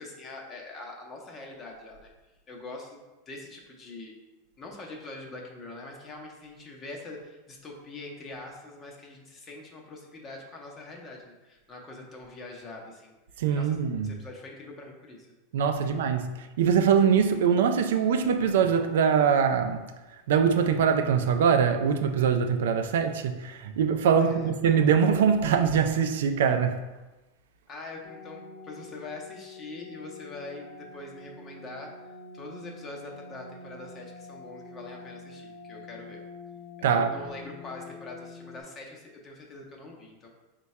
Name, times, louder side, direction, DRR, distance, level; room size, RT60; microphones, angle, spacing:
voice 1, 0.0-2.1 2.5-4.2 4.6-13.8 14.0-15.3 15.9-16.1 24.2-24.5 27.7-32.1 32.3-36.2 36.8-40.3, left 2 dB, 25° left, 0.7 m, -43 dB
voice 2, 13.4-14.2 15.5-16.3 16.6-19.9 20.3-26.8 36.8-37.1, right 7 dB, 80° right, 0.3 m, -23 dB
sound 1, 28.0-38.6, left 3 dB, 85° left, 0.5 m, -46 dB
4.6 x 2.2 x 4.1 m
supercardioid pair, 150°, 0 cm